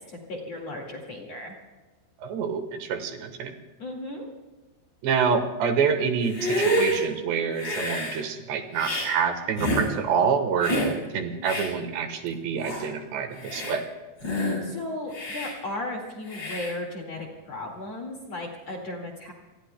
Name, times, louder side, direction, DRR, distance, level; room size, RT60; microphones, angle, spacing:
voice 1, 0.0-1.6 3.8-4.3 14.3-19.3, left 2 dB, 45° left, 0 dB, 2.4 m, -36 dB
voice 2, 2.2-3.6 5.0-10.7 11.1-13.8, right 6 dB, 70° right, 6 dB, 3.3 m, -27 dB
Hiss, 6.2-7.0 7.6-8.2 8.8-9.1 9.6-9.9 10.6-10.9 11.4-11.7 12.3-12.4 12.6-12.9 13.4-13.8 14.2-14.6 15.1-15.5 16.3-16.7, equal, 25° left, 5.9 m, -28 dB
28.5 x 20.5 x 2.2 m, 1.2 s
omnidirectional pair, 5.5 m